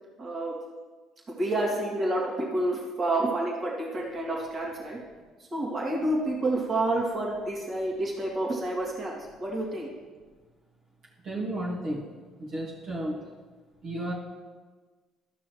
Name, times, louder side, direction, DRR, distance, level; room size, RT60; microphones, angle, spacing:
voice 1, 0.2-0.5 1.3-5.0 5.4-9.9, right 1 dB, 40° right, -3 dB, 2.2 m, -29 dB
voice 2, 11.2-12.0 12.4-13.1 13.8-14.1, right 1 dB, 60° right, -6 dB, 2.1 m, -32 dB
13.0 x 6.1 x 3.2 m, 1.4 s
hypercardioid pair, 55°, 0 cm